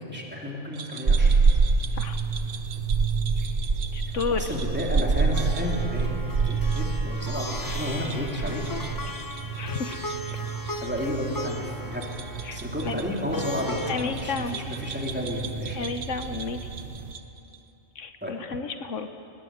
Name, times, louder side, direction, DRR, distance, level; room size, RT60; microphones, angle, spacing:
voice 1, 0.0-1.3 3.4-3.5 4.4-6.1 6.4-8.6 10.8-12.0 12.5-15.8 18.2-18.3, left 1 dB, 10° right, -2 dB, 3.3 m, -31 dB
sound 1, 0.7-10.9 11.2-11.3 11.9-17.7, right 7 dB, 90° right, 1.4 m, -43 dB
sound 2, 1.1-17.2, right 4 dB, 45° right, 1.2 m, -28 dB
voice 2, 3.9-4.5 9.1-9.2 9.5-10.0 12.4-13.0 13.9-14.6 15.8-16.6 17.9-19.1, left 5 dB, 75° left, 8 dB, 1.3 m, -32 dB
Plucked string instrument, 5.3-13.9, left 1 dB, 20° left, 0.7 m, -38 dB
21.0 x 20.5 x 7.9 m, 3.0 s
omnidirectional pair, 1.3 m